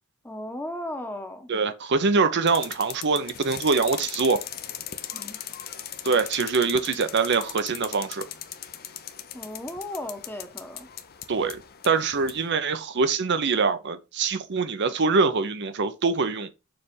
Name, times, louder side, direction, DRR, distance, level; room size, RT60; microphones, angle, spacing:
voice 1, 0.2-1.5 5.1-5.4 9.3-10.9, left 1 dB, 10° left, 1.0 m, -36 dB
voice 2, 1.5-4.4 6.0-8.2 11.3-16.5, right 4 dB, 50° right, 0.6 m, -24 dB
sound 1, 2.5-12.5, left 10 dB, 45° left, 0.7 m, -39 dB
6.9 x 3.3 x 5.3 m
head